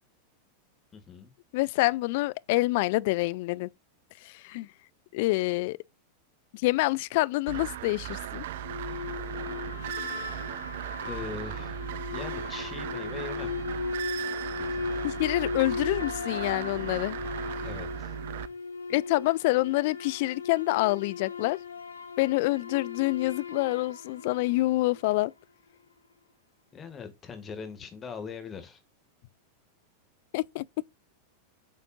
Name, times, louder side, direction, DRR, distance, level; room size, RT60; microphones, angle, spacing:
voice 1, 0.9-1.3 11.0-11.8 12.1-13.5 14.5-15.1 17.6-18.1 26.7-28.8, left 5 dB, 20° left, 2.1 m, -41 dB
voice 2, 1.5-3.7 4.2-4.7 5.1-5.8 6.5-8.4 15.0-17.2 18.9-21.6 22.2-25.3 30.3-30.6, left 20 dB, 50° left, 0.4 m, -27 dB
sound 1, 7.5-18.5, right 12 dB, 55° right, 0.5 m, -37 dB
sound 2, 8.6-25.2, left 4 dB, 75° left, 1.0 m, -37 dB
8.5 x 5.1 x 2.6 m
figure-of-eight pair, 90°, 0 cm